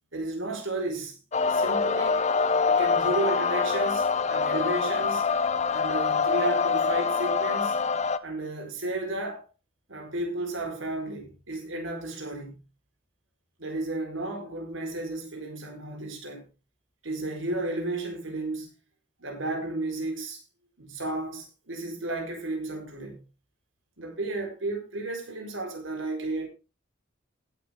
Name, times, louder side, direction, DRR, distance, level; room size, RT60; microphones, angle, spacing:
voice 1, 0.1-1.2 1.5-2.3 2.7-5.2 5.7-7.8 8.2-9.4 9.9-12.6 13.6-16.5 17.0-18.7 19.2-20.4 20.8-23.2 24.0-26.5, right 2 dB, 80° right, 4.4 m, -33 dB
sound 1, 1.3-8.2, left 5 dB, 35° left, 0.6 m, -25 dB
16.0 x 8.6 x 3.7 m
head